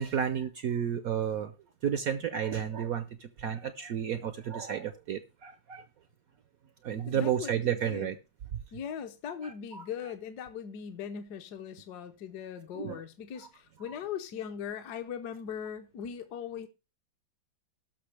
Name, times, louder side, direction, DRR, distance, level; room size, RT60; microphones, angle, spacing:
voice 1, 0.0-1.5 1.8-5.9 6.8-8.2 9.7-9.8 12.7-13.0, right 8 dB, 65° right, 0.9 m, -32 dB
voice 2, 7.1-8.1 8.7-16.7, left 8 dB, 65° left, 1.3 m, -39 dB
18.0 x 6.2 x 3.3 m
omnidirectional pair, 2.1 m